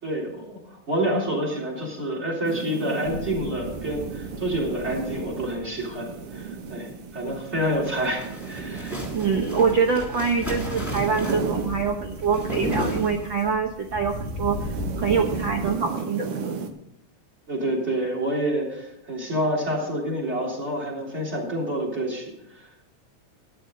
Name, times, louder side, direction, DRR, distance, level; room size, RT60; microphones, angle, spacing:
voice 1, 0.0-9.0 17.5-22.7, right 1 dB, 20° right, 1 dB, 3.5 m, -28 dB
sound 1, 2.4-13.6 13.8-16.7, right 5 dB, 60° right, 1.7 m, -34 dB
sound 2, 3.0-15.8, left 2 dB, 70° left, 0.4 m, -39 dB
sound 3, 7.6-13.6, equal, 5° left, 2.4 m, -34 dB
voice 2, 9.1-16.6, right 5 dB, 75° right, 3 dB, 1.1 m, -25 dB
13.5 x 11.0 x 3.9 m, 0.80 s
omnidirectional pair, 3.6 m